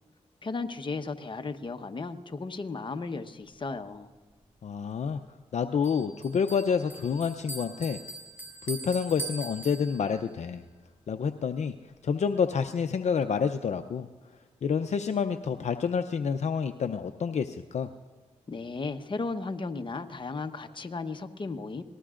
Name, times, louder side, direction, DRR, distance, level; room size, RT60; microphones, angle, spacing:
voice 1, 0.4-4.1 18.5-21.8, left 3 dB, 40° left, 7 dB, 1.0 m, -35 dB
voice 2, 4.6-5.2 5.5-8.0 8.6-10.6 11.1-11.8 12.0-14.1 14.6-17.9, left 6 dB, 60° left, 8 dB, 0.6 m, -28 dB
Bell, 5.8-10.3, right 3 dB, 15° right, 3.4 m, -42 dB
25.0 x 19.5 x 2.5 m, 1.3 s
cardioid pair, 55°, 13 cm